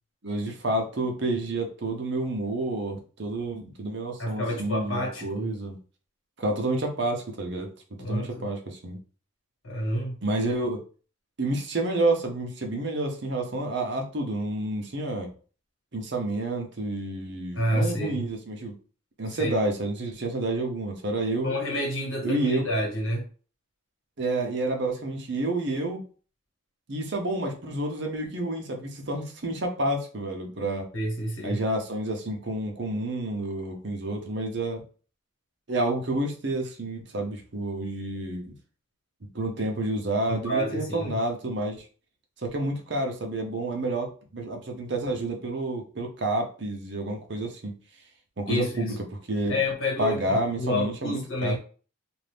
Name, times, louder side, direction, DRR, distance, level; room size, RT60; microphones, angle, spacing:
voice 1, 0.2-5.8 6.4-7.7 8.0-9.0 10.2-10.8 11.4-15.3 15.9-18.7 19.2-21.5 22.2-22.6 24.2-26.0 26.9-30.9 31.4-34.8 35.7-38.5 39.3-41.8 42.4-47.7 48.4-48.9 49.3-49.6 50.0-51.6, right 2 dB, 60° right, 0.7 m, -29 dB
voice 2, 4.2-5.5 8.0-8.5 9.6-10.1 17.5-18.3 19.3-19.6 21.4-23.3 30.9-31.6 40.3-41.2 48.5-49.0 49.5-51.6, equal, 75° left, 1.4 m, -29 dB
2.6 x 2.5 x 3.4 m
head